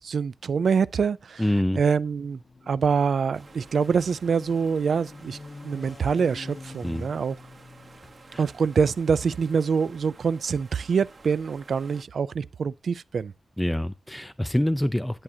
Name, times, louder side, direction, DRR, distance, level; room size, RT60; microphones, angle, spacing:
voice 1, 0.0-1.4 1.8-2.4 2.7-5.4 5.6-7.3 8.4-13.3, right 6 dB, 75° right, 0.3 m, -25 dB
sound 1, 1.2-8.8, left 3 dB, 55° left, 0.8 m, -47 dB
voice 2, 1.4-1.8 6.8-7.1 8.3-8.4 13.6-15.2, left 1 dB, 5° left, 0.4 m, -26 dB
sound 2, 3.3-12.0, right 3 dB, 55° right, 1.1 m, -51 dB
11.0 x 6.2 x 2.7 m
wide cardioid pair, 95°, 0 cm